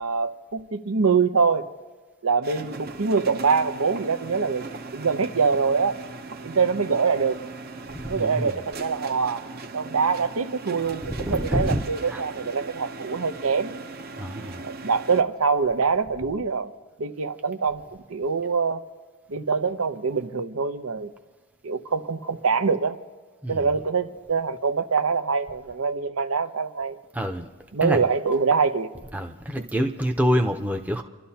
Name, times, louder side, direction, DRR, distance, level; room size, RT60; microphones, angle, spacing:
voice 1, 0.0-1.7 2.2-4.7 4.9-6.0 6.4-7.4 8.1-9.4 9.7-13.7 14.6-16.7 17.0-17.8 18.1-18.8 19.3-21.1 21.6-23.0 23.5-27.0 27.7-28.9, right 5 dB, 75° right, 8 dB, 0.8 m, -24 dB
sound 1, 2.4-15.2, right 3 dB, 45° right, 0.8 m, -39 dB
voice 2, 7.9-8.6 11.0-12.2 14.2-14.6 23.4-23.7 27.1-27.5 27.8-28.1 29.1-31.0, equal, 5° right, 3 dB, 0.7 m, -26 dB
30.0 x 12.5 x 2.9 m, 1.4 s
head